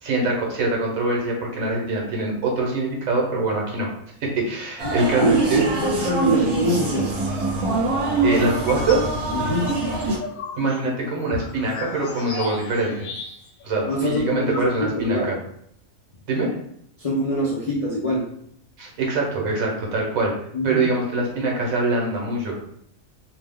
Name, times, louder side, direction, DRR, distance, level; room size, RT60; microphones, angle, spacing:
voice 1, 0.0-3.9 4.2-5.6 8.2-9.0 10.6-13.1 13.6-15.4 16.3-16.5 18.8-20.3 20.6-22.6, right 2 dB, 80° right, -1 dB, 1.3 m, -23 dB
sound 1, 4.8-10.2, right 2 dB, 60° right, 1.0 m, -24 dB
voice 2, 5.2-7.1 9.3-9.7 13.8-14.6 14.8-15.4 17.0-18.3 20.5-20.9, right 1 dB, 55° left, -5 dB, 0.4 m, -24 dB
sound 2, 8.5-9.1 9.5-13.6 13.9-14.0 14.2-15.1, left 4 dB, 80° left, 1.0 m, -35 dB
2.8 x 2.3 x 3.5 m, 0.69 s
omnidirectional pair, 1.4 m